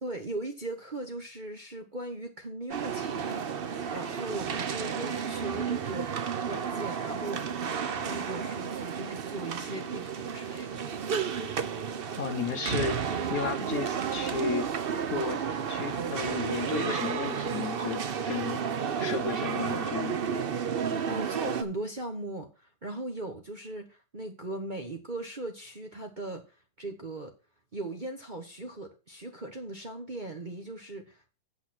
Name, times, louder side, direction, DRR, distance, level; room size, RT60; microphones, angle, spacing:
voice 1, 0.0-6.1 6.4-10.8 21.1-26.4 26.8-27.3 27.7-31.2, right 2 dB, 30° right, 1.0 m, -38 dB
sound 1, 2.7-21.6, right 7 dB, 80° right, 0.5 m, -32 dB
voice 2, 12.2-13.0 13.3-14.7 15.1-15.4 15.7-18.6 19.0-20.2, left 5 dB, 55° left, 1.1 m, -33 dB
8.4 x 6.1 x 6.0 m
omnidirectional pair, 2.1 m